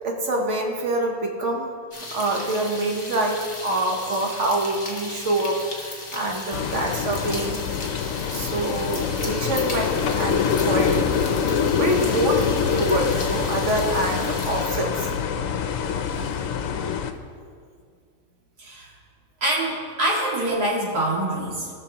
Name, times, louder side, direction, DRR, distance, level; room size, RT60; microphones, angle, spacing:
voice 1, 0.0-1.7 2.1-7.6 8.3-11.1 11.7-12.4 12.7-15.1, right 1 dB, 55° right, 1 dB, 1.3 m, -25 dB
sound 1, 1.9-14.7, left 2 dB, 40° left, 1.5 m, -36 dB
sound 2, 6.5-17.1, left 7 dB, 70° left, 0.9 m, -25 dB
voice 2, 18.6-18.9 19.4-21.7, right 1 dB, 90° right, -5 dB, 2.6 m, -25 dB
17.5 x 6.1 x 2.9 m, 2.1 s
omnidirectional pair, 1.6 m